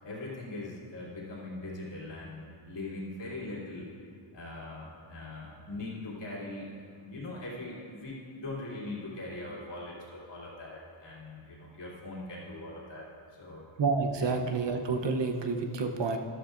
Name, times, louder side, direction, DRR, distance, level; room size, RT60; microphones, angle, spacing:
voice 1, 0.0-3.9 4.3-13.1 13.4-13.7 14.2-14.4, left 2 dB, 55° left, -6 dB, 2.8 m, -41 dB
voice 2, 13.8-16.2, right 4 dB, 55° right, 4 dB, 0.9 m, -29 dB
13.0 x 13.0 x 2.6 m, 2.4 s
wide cardioid pair, 155°, 50 cm